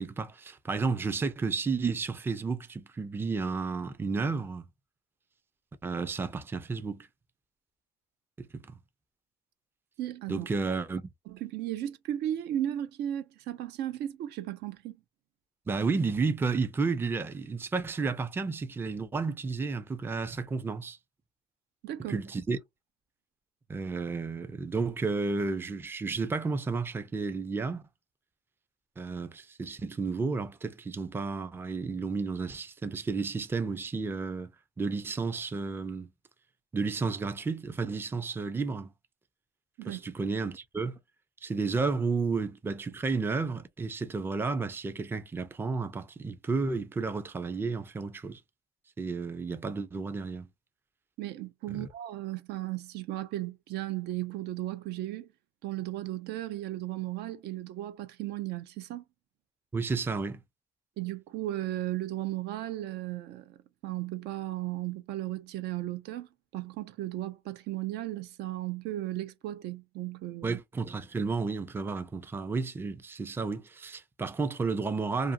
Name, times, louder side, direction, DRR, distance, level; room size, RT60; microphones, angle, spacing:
voice 1, 0.0-4.7 5.8-7.1 8.4-8.7 10.3-11.0 15.7-21.0 22.0-22.6 23.7-27.8 29.0-34.5 34.8-36.1 36.7-38.9 39.9-41.0 41.4-48.4 49.0-50.5 51.7-51.9 59.7-60.4 70.4-75.3, right 4 dB, 15° right, 0.4 m, -32 dB
voice 2, 10.0-10.5 11.3-15.0 21.8-22.2 39.8-40.0 51.2-55.3 55.6-59.0 61.0-63.6 63.8-70.6, right 13 dB, 80° right, 0.5 m, -35 dB
2.5 x 2.3 x 2.5 m
cardioid pair, 110°, 17 cm